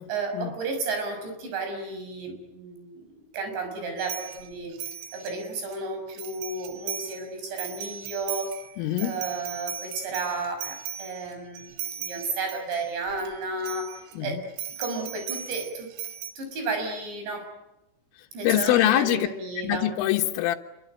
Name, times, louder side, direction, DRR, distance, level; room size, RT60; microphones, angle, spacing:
voice 1, 0.1-4.7 5.1-8.6 9.0-14.5 14.8-15.9 16.4-17.5 18.3-19.9, right 3 dB, 60° right, 5 dB, 8.2 m, -33 dB
sound 1, 4.0-5.8 6.1-7.2 7.5-13.3 13.6-14.1 14.6-16.3, right 9 dB, 80° right, 3.9 m, -37 dB
voice 2, 8.8-9.2 14.2-14.4 18.4-19.3 19.6-20.6, left 13 dB, 85° left, 2 dB, 4.0 m, -23 dB
27.5 x 23.0 x 9.2 m, 0.90 s
omnidirectional pair, 5.7 m